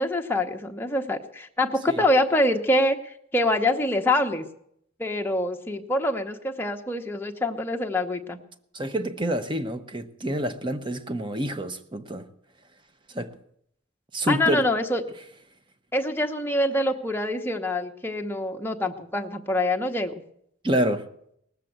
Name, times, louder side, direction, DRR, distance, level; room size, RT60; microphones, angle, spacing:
voice 1, 0.0-4.4 5.0-8.4 14.3-15.0 15.9-20.2, left 1 dB, 10° left, 1.0 m, -25 dB
voice 2, 8.7-12.2 13.1-13.4 14.1-14.7 20.6-21.1, right 1 dB, 25° right, 0.9 m, -27 dB
19.0 x 7.5 x 8.0 m
head